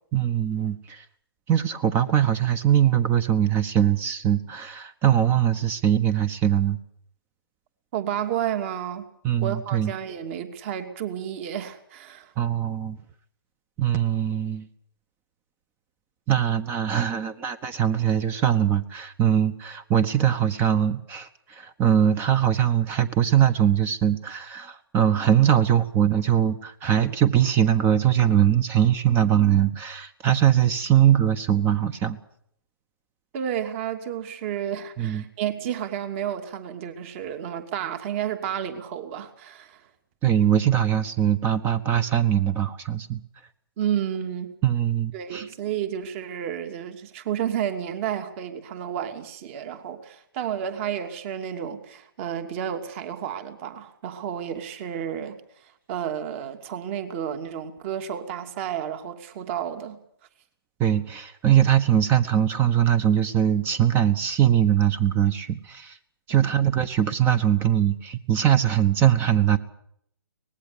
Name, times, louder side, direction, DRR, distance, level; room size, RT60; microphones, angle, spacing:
voice 1, 0.1-1.0 1.5-6.8 9.2-9.9 12.4-13.0 13.8-14.7 16.3-32.2 35.0-35.2 40.2-43.2 44.6-45.5 60.8-66.0 66.3-69.6, right 10 dB, 15° right, 16 dB, 1.2 m, -21 dB
voice 2, 7.9-9.1 9.4-12.3 33.3-39.9 43.8-44.5 45.1-55.4 55.9-60.0, right 9 dB, 35° right, 8 dB, 2.8 m, -31 dB
24.0 x 20.0 x 7.0 m, 0.69 s
hypercardioid pair, 140°, 12 cm